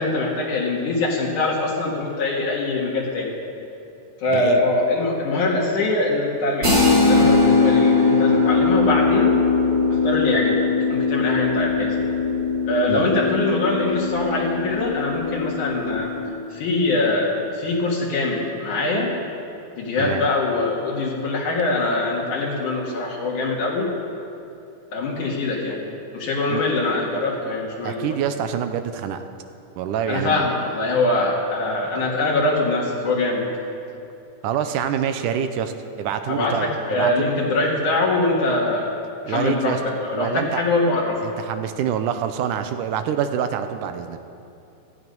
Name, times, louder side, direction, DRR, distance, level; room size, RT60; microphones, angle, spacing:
voice 1, 0.0-3.3 4.2-9.3 10.0-10.6 10.9-11.9 12.6-16.1 16.5-19.1 19.7-23.9 24.9-25.8 26.1-28.0 30.1-33.4 36.3-38.9 39.3-41.2, left 2 dB, 75° left, -4 dB, 3.3 m, -23 dB
voice 2, 4.3-4.7 12.9-13.1 20.0-20.3 26.5-26.6 27.8-29.2 29.8-30.4 34.4-35.7 36.0-37.3 39.3-39.8 40.1-40.6 41.2-44.2, right 8 dB, 85° right, 8 dB, 2.3 m, -26 dB
sound 1, 6.6-16.3, left 4 dB, 50° right, 4.8 m, -20 dB
17.0 x 13.0 x 5.4 m, 2.7 s
omnidirectional pair, 3.6 m